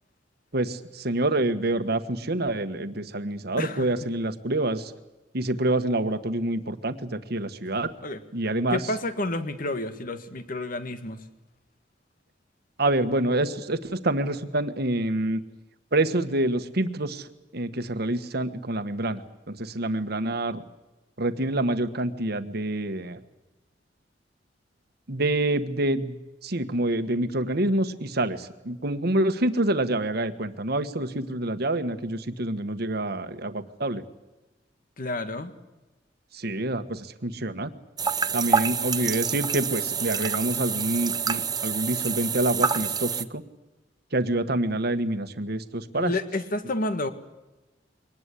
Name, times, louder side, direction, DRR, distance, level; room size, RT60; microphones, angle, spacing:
voice 1, 0.5-4.9 5.3-7.9 8.3-8.9 12.8-15.4 15.9-17.3 17.5-20.6 21.2-23.2 25.1-26.2 26.4-34.0 36.3-37.7 38.3-43.4 44.1-46.1, right 1 dB, 60° right, 9 dB, 1.5 m, -27 dB
voice 2, 3.6-3.9 8.0-8.2 8.7-11.2 35.0-35.5 45.9-47.1, left 2 dB, 50° left, 10 dB, 1.8 m, -30 dB
sound 1, 38.0-43.2, right 6 dB, 20° right, 0.9 m, -27 dB
23.5 x 19.0 x 8.4 m, 1.1 s
head